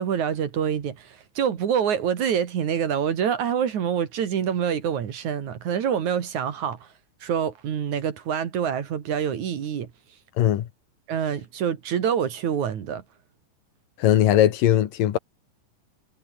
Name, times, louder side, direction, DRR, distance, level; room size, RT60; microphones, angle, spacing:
voice 1, 0.0-6.8 7.2-9.9 11.1-13.0, right 8 dB, 60° right, 3.3 m, -26 dB
voice 2, 10.4-10.7 14.0-15.2, left 12 dB, 75° left, 3.1 m, -19 dB
omnidirectional pair, 4.0 m